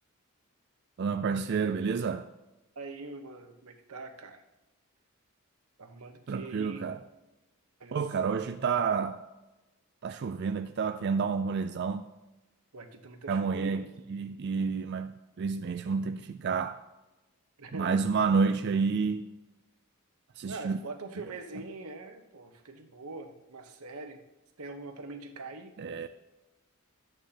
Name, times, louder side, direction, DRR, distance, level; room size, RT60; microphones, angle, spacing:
voice 1, 1.0-2.3 6.3-7.0 7.9-9.2 10.0-12.1 13.3-13.8 14.1-16.8 17.7-19.3 20.4-20.8 25.8-26.1, right 5 dB, 50° right, 0.4 m, -29 dB
voice 2, 2.8-4.4 5.8-6.9 7.8-8.0 12.7-13.9 17.6-18.0 20.4-24.2 24.6-26.1, right 3 dB, 90° right, 1.0 m, -43 dB
13.0 x 9.0 x 2.9 m
head